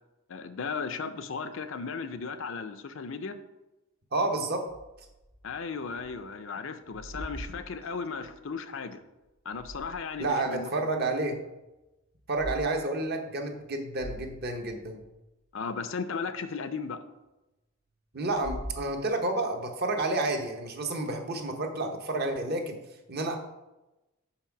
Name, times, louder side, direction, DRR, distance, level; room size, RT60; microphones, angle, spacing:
voice 1, 0.3-3.4 5.4-9.0 9.5-10.9 15.5-17.0, left 5 dB, 65° left, 10 dB, 0.5 m, -36 dB
voice 2, 4.1-4.6 10.2-11.4 12.3-15.0 18.1-22.8 23.1-23.4, right 2 dB, 50° right, 4 dB, 0.9 m, -30 dB
sound 1, 4.7-6.3 6.6-8.4 9.3-10.4 10.8-10.9 12.2-12.6 13.0-13.2 13.6-13.7 13.9-15.2 18.2-19.4, right 1 dB, 90° right, 2.0 m, -43 dB
5.8 x 4.6 x 5.8 m, 1.0 s
head